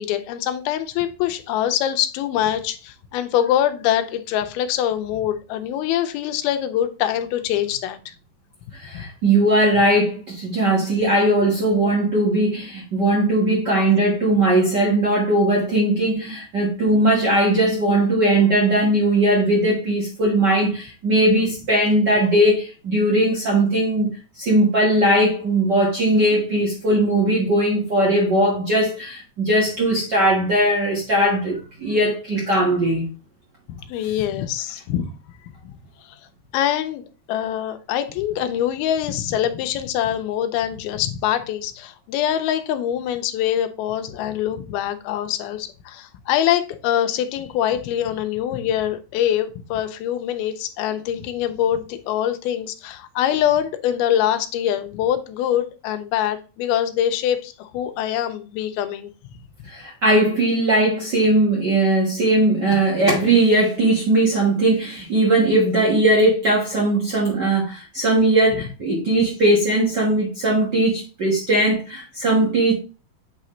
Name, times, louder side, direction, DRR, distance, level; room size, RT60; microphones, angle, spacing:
voice 1, 0.0-8.0 8.9-9.0 33.7-35.1 35.7-35.8 36.5-37.0 37.3-59.1 59.6-59.7, left 11 dB, 85° left, 2.5 m, -24 dB
voice 2, 8.8-24.1 24.4-33.1 59.6-72.7, right 1 dB, 60° right, 1.1 m, -19 dB
8.4 x 3.9 x 3.1 m
omnidirectional pair, 4.3 m